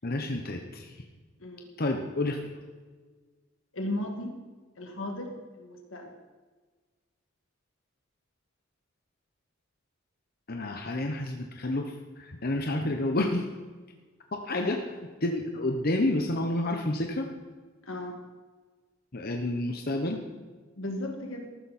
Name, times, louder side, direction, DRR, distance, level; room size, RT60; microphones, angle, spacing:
voice 1, 0.0-0.9 1.8-2.4 10.5-11.9 12.2-13.4 14.3-14.8 15.2-17.3 19.1-20.2, left 1 dB, 50° left, 3 dB, 1.0 m, -29 dB
voice 2, 3.7-4.4 4.8-6.1 14.6-14.7 17.9-18.2 20.8-21.5, left 1 dB, 85° left, 2 dB, 2.3 m, -35 dB
14.5 x 12.5 x 4.3 m, 1.4 s
head